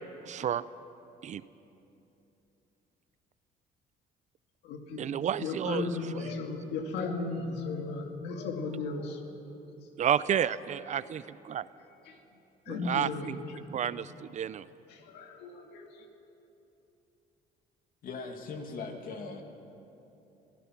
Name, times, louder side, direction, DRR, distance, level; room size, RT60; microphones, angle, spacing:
voice 1, 0.3-0.7 1.2-1.4 5.0-6.3 10.0-11.7 12.7-13.4 13.7-14.7, right 9 dB, 45° right, 17 dB, 0.5 m, -31 dB
voice 2, 4.6-5.1 5.4-9.2 12.1-12.2 12.7-13.3 14.9-15.9, left 3 dB, 90° left, 3 dB, 2.2 m, -35 dB
voice 3, 18.0-19.4, left 4 dB, 55° left, 4 dB, 2.5 m, -39 dB
26.5 x 16.5 x 6.0 m, 2.9 s
cardioid pair, 110°, 17 cm